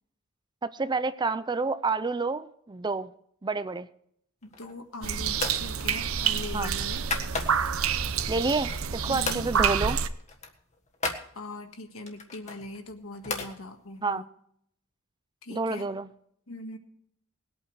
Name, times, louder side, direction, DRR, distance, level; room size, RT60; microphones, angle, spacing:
voice 1, 0.6-3.1 3.4-3.9 6.5-6.7 8.3-10.0 14.0-14.2 15.5-16.1, right 3 dB, 20° right, 14 dB, 0.5 m, -29 dB
voice 2, 4.4-7.1 9.1-9.5 11.3-14.3 15.4-15.9 16.5-16.8, left 2 dB, 70° left, 6 dB, 1.8 m, -41 dB
sound 1, 4.4-4.9 5.3-5.7 6.0-7.8 8.3-9.0 9.2-9.5 9.8-9.9 10.2-11.3 12.0-13.5, left 3 dB, 30° left, 1.5 m, -35 dB
sound 2, 5.0-10.1, right 7 dB, 70° right, 0.8 m, -28 dB
20.0 x 8.7 x 4.8 m, 0.71 s
head